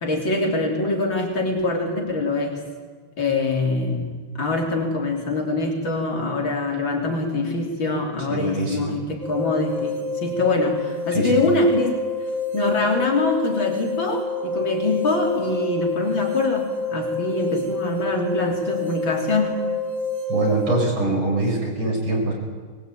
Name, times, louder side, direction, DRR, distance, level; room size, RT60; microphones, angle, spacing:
voice 1, 0.0-2.6 3.2-12.1 12.5-19.7, left 2 dB, 65° left, 1 dB, 4.1 m, -24 dB
voice 2, 8.3-8.9 11.1-11.4 20.3-22.3, right 2 dB, 80° right, -1 dB, 7.6 m, -23 dB
sound 1, 9.2-20.9, left 3 dB, 60° right, 3.7 m, -28 dB
22.0 x 21.5 x 9.2 m, 1.5 s
omnidirectional pair, 2.3 m